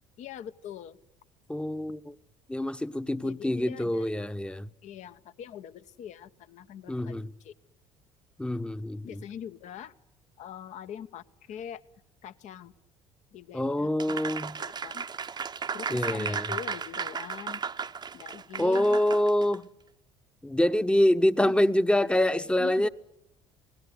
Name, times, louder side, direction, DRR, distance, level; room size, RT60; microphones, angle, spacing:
voice 1, 0.2-1.0 3.2-4.3 4.8-7.5 9.0-9.9 10.4-11.8 12.2-12.7 13.3-14.2 14.6-15.1 15.7-17.6 18.1-19.0 21.4-21.7 22.6-22.9, left 9 dB, 50° left, 1.1 m, -43 dB
voice 2, 1.5-2.1 2.5-4.7 6.9-7.3 8.4-9.2 13.5-14.6 15.9-16.4 18.6-19.7 20.4-22.9, left 1 dB, 5° left, 1.0 m, -26 dB
Applause, 14.0-19.6, right 6 dB, 30° right, 0.9 m, -35 dB
27.0 x 19.5 x 9.6 m
figure-of-eight pair, 55°, 15 cm